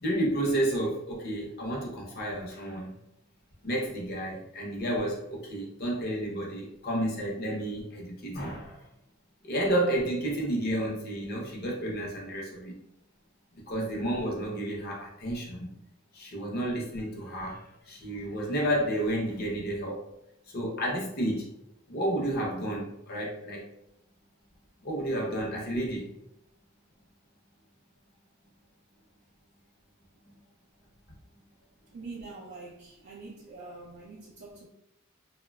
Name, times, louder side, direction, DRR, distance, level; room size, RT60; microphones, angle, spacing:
voice 1, 0.0-2.9 3.6-8.8 9.4-12.7 13.7-15.7 16.1-20.0 20.5-21.5 21.9-23.6 24.8-26.1, right 1 dB, 50° left, 0.7 m, -31 dB
voice 2, 31.9-34.7, right 3 dB, 50° right, 0.3 m, -44 dB
2.8 x 2.1 x 2.2 m
head